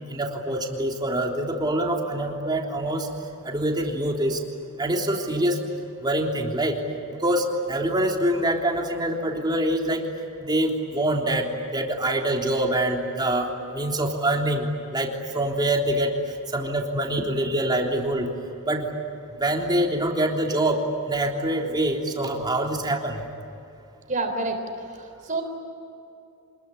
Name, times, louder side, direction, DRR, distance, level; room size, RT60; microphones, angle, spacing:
voice 1, 0.1-3.1 3.4-4.4 4.8-5.6 6.0-6.8 7.1-10.1 10.4-18.3 18.6-18.9 19.4-23.2, right 1 dB, 20° right, 1 dB, 3.4 m, -25 dB
voice 2, 24.1-24.6 25.2-25.4, right 3 dB, 35° right, 5 dB, 3.7 m, -26 dB
26.5 x 21.5 x 9.9 m, 2.7 s
head